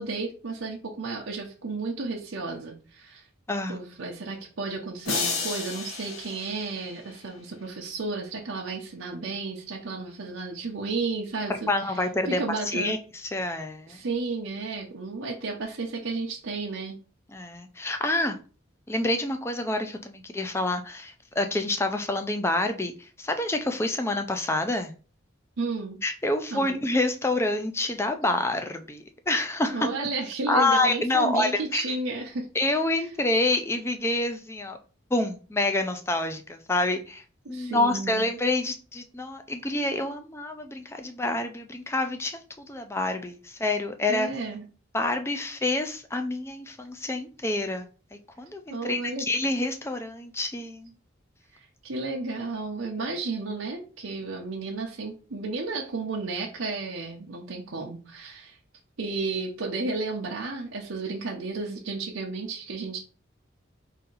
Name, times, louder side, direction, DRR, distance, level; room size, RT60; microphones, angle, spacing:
voice 1, 0.0-3.2 3.7-12.9 13.9-17.0 25.6-26.0 26.5-26.8 29.7-32.5 33.0-33.1 37.4-38.3 44.1-44.6 48.7-49.3 51.5-58.6 59.0-63.0, right 3 dB, 85° right, -1 dB, 0.7 m, -33 dB
voice 2, 3.5-3.8 11.5-14.0 17.3-18.4 18.9-24.9 26.0-29.9 30.5-31.8 32.5-34.8 35.1-44.3 44.9-47.9 48.4-50.9, left 2 dB, 15° left, 7 dB, 0.4 m, -27 dB
sound 1, 5.0-7.3, left 4 dB, 80° left, 1.0 m, -32 dB
4.1 x 2.7 x 3.9 m, 0.37 s
head